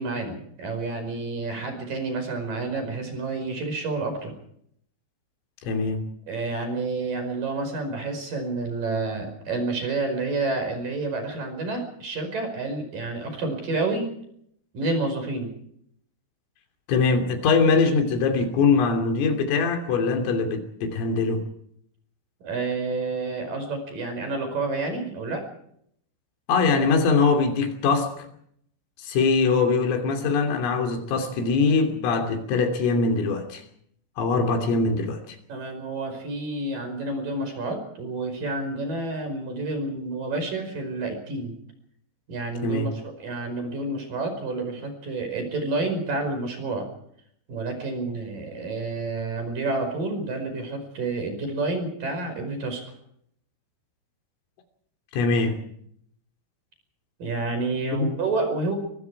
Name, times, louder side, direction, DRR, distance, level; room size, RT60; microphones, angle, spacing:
voice 1, 0.0-4.3 6.3-14.1 14.7-15.5 22.4-25.4 35.5-41.6 42.3-46.9 47.5-52.8 57.2-58.7, right 3 dB, 45° right, 6 dB, 6.4 m, -29 dB
voice 2, 5.6-6.0 16.9-21.4 26.5-28.3 29.0-33.6 34.2-35.4 42.6-42.9 55.1-55.6 57.9-58.1, left 4 dB, 75° left, 6 dB, 5.6 m, -22 dB
24.5 x 23.5 x 4.8 m, 0.68 s
omnidirectional pair, 5.9 m